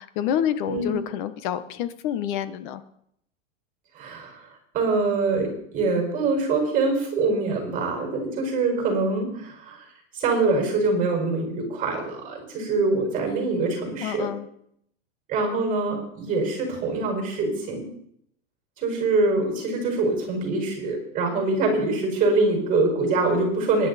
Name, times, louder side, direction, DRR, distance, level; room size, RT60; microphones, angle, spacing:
voice 1, 0.0-2.8 14.0-14.5, left 10 dB, 45° left, 12 dB, 1.1 m, -28 dB
voice 2, 3.9-4.5 4.7-9.8 10.1-14.3 15.3-17.8 18.8-23.9, right 3 dB, 25° right, 2 dB, 5.5 m, -24 dB
22.0 x 10.5 x 4.2 m, 0.72 s
supercardioid pair, 165°, 35 cm